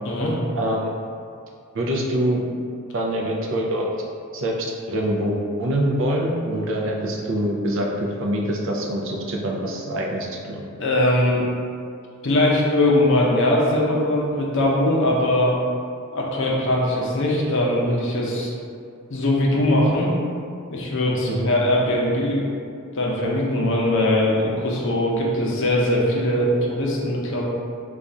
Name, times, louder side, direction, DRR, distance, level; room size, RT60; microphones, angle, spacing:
voice 1, 0.0-0.3 10.8-11.4 12.2-15.5 16.1-18.5 19.1-20.1 20.7-22.4 22.9-27.5, left 1 dB, 60° left, -3 dB, 0.6 m, -21 dB
voice 2, 0.6-0.9 1.7-2.4 2.9-3.9 4.3-4.6 4.9-10.7 21.3-21.5, right 1 dB, 60° right, -1 dB, 0.4 m, -24 dB
2.4 x 2.3 x 4.0 m, 2.4 s
head